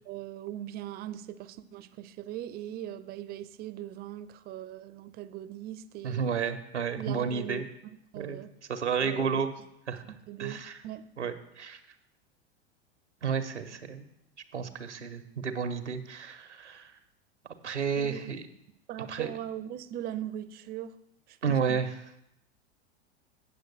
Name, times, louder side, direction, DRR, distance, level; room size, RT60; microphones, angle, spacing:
voice 1, 0.1-6.3 7.0-8.5 9.0-9.2 10.1-11.0 17.9-18.3 18.9-21.0 21.3-21.8, right 12 dB, 30° right, 0.5 m, -40 dB
voice 2, 6.0-7.6 8.2-8.4 8.7-9.5 9.9-10.0 10.4-10.8 11.2-11.8 13.2-14.0 14.5-16.9 17.6-18.5 19.1-19.3 21.4-21.9, right 6 dB, 85° right, 0.9 m, -31 dB
8.9 x 6.5 x 6.6 m
figure-of-eight pair, 85°, 34 cm